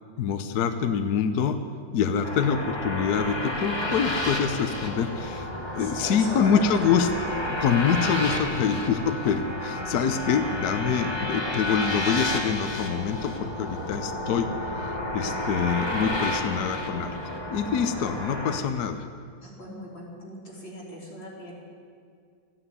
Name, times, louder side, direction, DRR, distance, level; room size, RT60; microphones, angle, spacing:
voice 1, 0.2-1.6 1.9-7.1 7.5-14.5 14.8-17.2 17.5-19.0, left 7 dB, 60° left, 8 dB, 1.2 m, -25 dB
sound 1, 2.2-18.6, left 1 dB, 15° left, 1.5 m, -31 dB
voice 2, 5.8-6.9 19.4-21.6, equal, 85° left, -4 dB, 4.4 m, -38 dB
14.5 x 10.0 x 9.5 m, 2.3 s
omnidirectional pair, 2.1 m